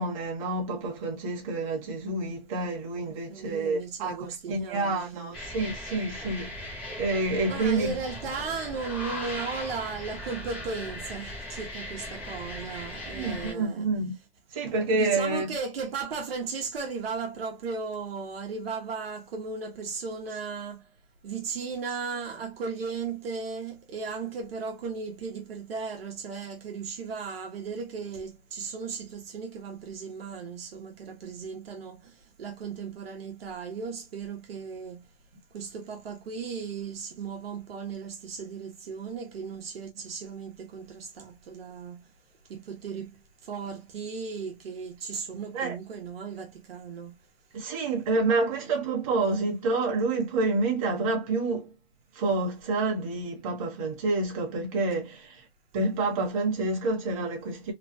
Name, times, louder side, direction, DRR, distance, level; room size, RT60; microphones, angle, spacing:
voice 1, 0.0-6.5 7.0-8.0 13.1-14.1 14.5-15.5 45.5-45.7 47.5-51.7 52.1-55.4 55.7-57.7, right 3 dB, 35° right, 1.2 m, -28 dB
voice 2, 3.1-5.3 7.5-13.9 14.6-20.9 21.2-35.1 35.5-42.1 42.5-47.2 48.1-48.3, right 5 dB, 70° right, 1.1 m, -36 dB
sound 1, 5.3-13.5, left 1 dB, 10° left, 0.4 m, -38 dB
3.2 x 2.2 x 2.6 m
hypercardioid pair, 170°, 31 cm